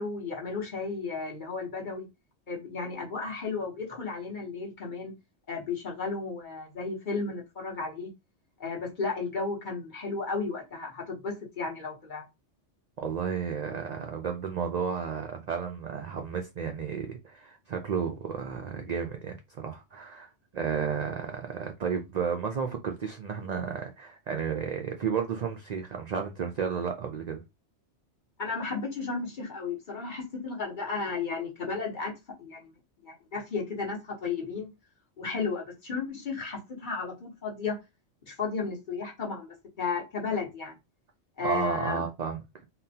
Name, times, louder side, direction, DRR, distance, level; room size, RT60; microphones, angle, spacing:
voice 1, 0.0-2.1 2.5-5.1 5.5-8.1 8.6-12.2 28.4-32.7 33.0-34.7 35.2-37.8 38.3-39.5 39.8-40.8 41.4-42.0, left 4 dB, 45° left, 1.1 m, -34 dB
voice 2, 13.0-27.4 41.4-42.4, right 6 dB, 65° right, 0.4 m, -32 dB
3.6 x 2.1 x 2.7 m
omnidirectional pair, 1.2 m